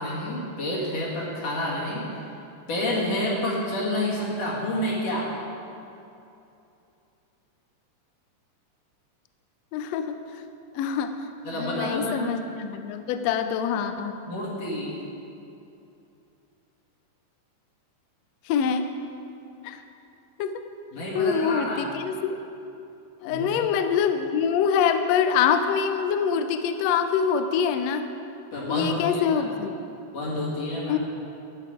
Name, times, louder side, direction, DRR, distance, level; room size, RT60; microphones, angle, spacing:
voice 1, 0.0-2.0 2.7-5.3 11.4-12.2 14.3-15.0 20.9-21.9 23.2-23.5 28.5-29.5 30.1-31.0, left 1 dB, 55° left, -6 dB, 3.0 m, -29 dB
voice 2, 9.7-10.2 10.7-14.1 18.4-18.9 19.6-19.8 20.4-20.6 21.1-22.4 23.2-28.1 28.7-29.7 30.9-31.0, left 7 dB, 85° left, 8 dB, 1.4 m, -25 dB
12.5 x 9.2 x 4.9 m, 2.8 s
omnidirectional pair, 3.8 m